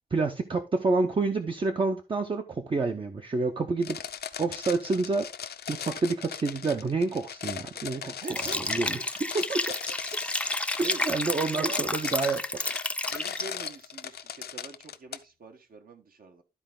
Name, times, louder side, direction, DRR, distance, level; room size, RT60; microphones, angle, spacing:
voice 1, 0.1-4.0 4.4-5.3 5.7-8.3 8.7-9.6 10.7-12.4, right 3 dB, 30° right, 4 dB, 0.7 m, -28 dB
sound 1, 3.8-15.2, left 8 dB, 75° left, 0.7 m, -39 dB
voice 2, 8.0-8.7 10.7-11.0 11.4-11.8 13.1-16.4, right 3 dB, 60° right, 5 dB, 1.4 m, -43 dB
Liquid, 8.2-13.7, left 1 dB, 5° left, 0.4 m, -31 dB
12.5 x 4.5 x 3.8 m, 0.26 s
wide cardioid pair, 180°, 17 cm